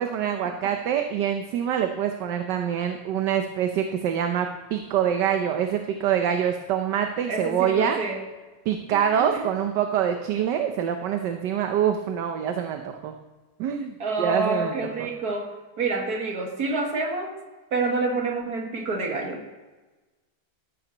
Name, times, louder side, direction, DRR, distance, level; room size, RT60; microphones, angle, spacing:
voice 1, 0.0-8.0 8.7-13.1 13.6-15.1, right 9 dB, 75° right, 5 dB, 1.4 m, -25 dB
voice 2, 7.3-8.2 9.1-9.5 14.0-17.4 17.7-19.6, right 3 dB, 60° right, 2 dB, 2.2 m, -28 dB
13.5 x 12.0 x 3.0 m, 1.2 s
omnidirectional pair, 1.9 m